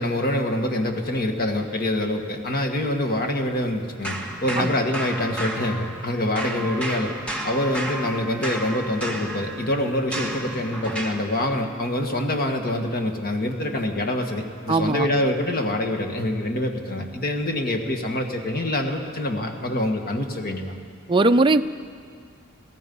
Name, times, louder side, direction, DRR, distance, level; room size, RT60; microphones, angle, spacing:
voice 1, 0.0-7.1 7.4-20.8, left 1 dB, 45° left, 3 dB, 1.7 m, -25 dB
sound 1, 4.0-6.1 6.4-11.3, right 1 dB, 5° left, 2.1 m, -32 dB
voice 2, 14.7-15.1 21.1-21.6, right 2 dB, 20° right, 8 dB, 0.6 m, -19 dB
29.0 x 17.5 x 5.5 m, 2.2 s
head